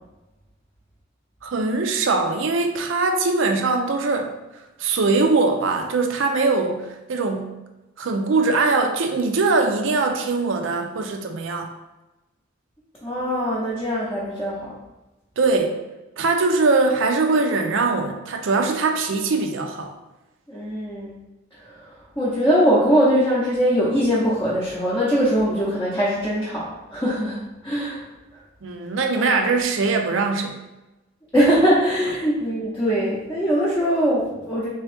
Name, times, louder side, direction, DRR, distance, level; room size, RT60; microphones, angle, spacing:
voice 1, 1.4-4.3 4.8-7.6 8.0-11.7 15.4-15.8 16.2-19.9 28.6-30.5, right 3 dB, 75° right, 4 dB, 0.5 m, -21 dB
voice 2, 13.0-14.7 20.5-21.2 22.2-28.0 29.2-29.3 31.3-34.7, equal, 15° left, -8 dB, 0.6 m, -21 dB
3.5 x 2.9 x 3.3 m, 1.0 s
head